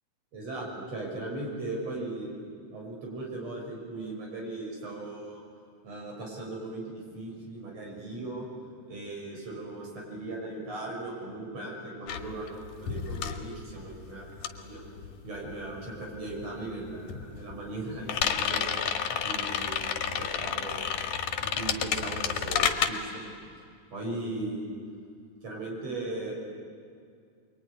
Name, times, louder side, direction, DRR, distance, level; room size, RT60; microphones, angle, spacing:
voice 1, 0.3-2.3 2.7-5.4 5.8-8.5 8.9-14.9 15.2-18.7 19.2-19.8 20.1-20.8 21.5-23.2 23.9-24.7 25.4-26.3, right 2 dB, 55° right, -1 dB, 7.2 m, -38 dB
sound 1, 12.1-15.9 16.1-22.9, left 8 dB, 85° left, 3.0 m, -31 dB
25.0 x 23.5 x 9.9 m, 2.2 s
omnidirectional pair, 3.5 m